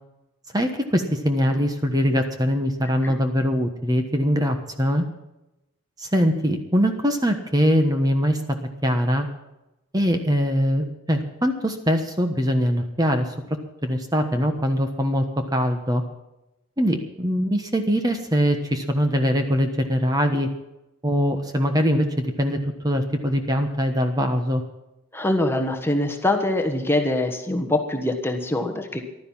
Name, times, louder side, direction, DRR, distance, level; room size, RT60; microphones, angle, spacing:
voice 1, 0.5-5.0 6.0-8.4 8.8-9.3 9.9-13.3 13.8-15.2 15.5-16.0 16.8-20.5 21.0-24.6, equal, 15° right, 6 dB, 1.2 m, -22 dB
voice 2, 25.1-29.0, left 1 dB, 10° left, 4 dB, 1.3 m, -23 dB
15.0 x 12.0 x 5.6 m, 0.94 s
head